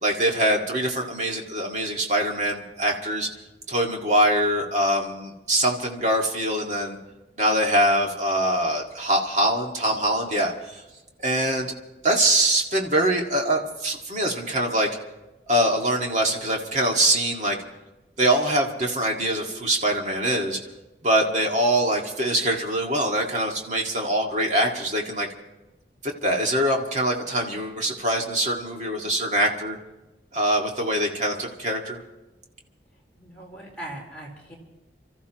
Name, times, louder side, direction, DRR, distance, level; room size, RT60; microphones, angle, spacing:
voice 1, 0.0-3.3 3.7-7.0 7.4-10.8 11.2-11.7 12.0-14.9 15.5-17.6 18.2-20.6 21.0-25.3 26.0-29.8 30.3-32.0, right 1 dB, 40° right, 1 dB, 2.0 m, -23 dB
voice 2, 33.2-34.5, right 1 dB, 5° left, -5 dB, 4.1 m, -39 dB
29.5 x 14.0 x 3.0 m, 1.1 s
head